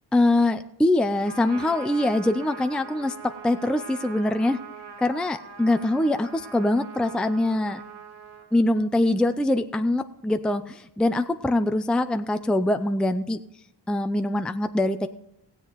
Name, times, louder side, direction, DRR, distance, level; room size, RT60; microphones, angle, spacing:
voice 1, 0.1-4.6 5.0-7.8 8.5-13.4 13.9-15.1, left 1 dB, ahead, 8 dB, 0.5 m, -23 dB
Trumpet, 1.2-8.5, right 6 dB, 65° right, 2.9 m, -42 dB
16.0 x 8.0 x 5.1 m, 0.81 s
cardioid pair, 70°, 45 cm